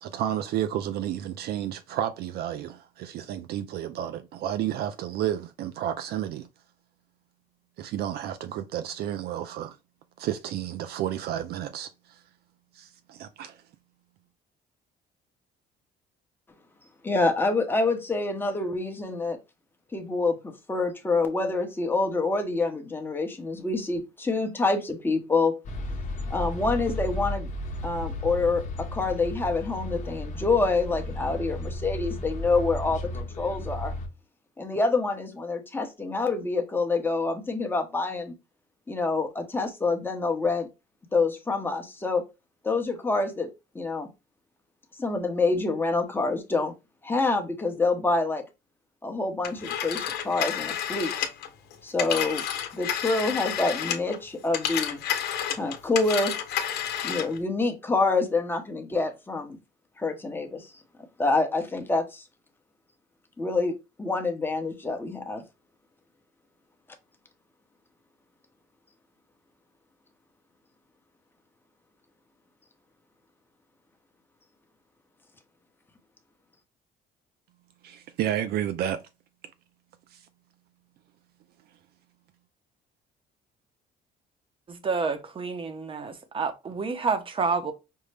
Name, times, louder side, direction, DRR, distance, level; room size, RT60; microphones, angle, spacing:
voice 1, 0.0-6.5 7.8-9.8 10.2-12.2 12.7-13.6 77.8-79.0 80.1-80.2, right 11 dB, 70° right, 0.4 m, -31 dB
voice 2, 17.0-19.4 19.9-25.5 26.3-27.5 27.8-33.1 33.4-33.9 34.6-38.3 38.9-40.7 41.1-42.2 42.6-43.5 43.7-44.1 45.0-46.7 47.0-48.4 49.0-51.1 51.8-52.4 52.7-55.0 55.5-56.3 57.0-59.6 60.0-60.7 61.2-62.2 63.4-63.7 64.0-65.4, left 3 dB, 10° left, 0.9 m, -26 dB
sound 1, 25.6-34.1, left 1 dB, 45° left, 0.9 m, -34 dB
Telephone, 49.4-54.2 54.5-57.4, left 9 dB, 70° left, 0.9 m, -30 dB
voice 3, 84.7-87.7, right 4 dB, 30° right, 0.8 m, -29 dB
5.3 x 2.1 x 3.2 m
cardioid pair, 110°, 17 cm